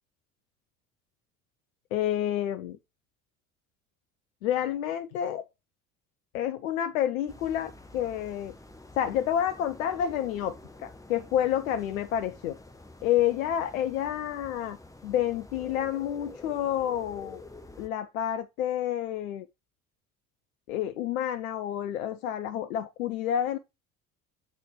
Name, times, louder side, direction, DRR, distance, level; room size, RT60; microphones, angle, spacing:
voice 1, 1.9-2.8 4.4-5.5 6.3-8.5 9.0-12.6 13.0-14.8 15.0-17.4 17.8-19.5 20.7-23.6, left 10 dB, 70° left, 0.6 m, -29 dB
sound 1, 7.3-17.9, left 2 dB, 10° left, 1.1 m, -48 dB
8.2 x 4.1 x 3.2 m
figure-of-eight pair, 60°, 43 cm